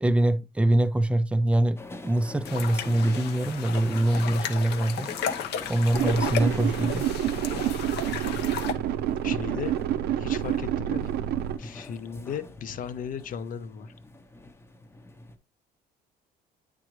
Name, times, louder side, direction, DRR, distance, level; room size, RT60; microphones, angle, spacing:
voice 1, 0.0-5.1 5.7-7.1, right 1 dB, 5° right, 0.4 m, -24 dB
sound 1, 1.7-15.4, left 2 dB, 15° left, 0.8 m, -44 dB
sound 2, 2.4-8.7, left 8 dB, 80° left, 0.8 m, -34 dB
sound 3, 5.9-11.6, right 11 dB, 70° right, 0.5 m, -28 dB
voice 2, 9.2-9.8 10.1-11.3 11.6-13.9, left 8 dB, 55° left, 0.8 m, -36 dB
9.1 x 3.8 x 3.1 m
cardioid pair, 110°, 17 cm